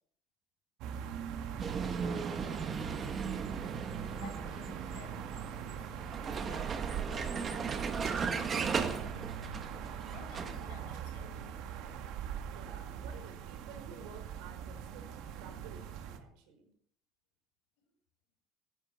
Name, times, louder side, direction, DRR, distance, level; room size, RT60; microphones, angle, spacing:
sound 1, 0.8-16.2, right 8 dB, 65° right, 2.0 m, -42 dB
Vehicle, 1.6-10.7, right 5 dB, 25° right, 1.6 m, -37 dB
voice 1, 2.0-5.9 6.2-9.6 10.1-11.6, left 6 dB, 90° left, 5 dB, 4.9 m, -55 dB
voice 2, 12.4-16.7, right 6 dB, 80° right, 6 dB, 5.0 m, -53 dB
15.0 x 12.5 x 5.4 m, 0.64 s
cardioid pair, 155°, 0 cm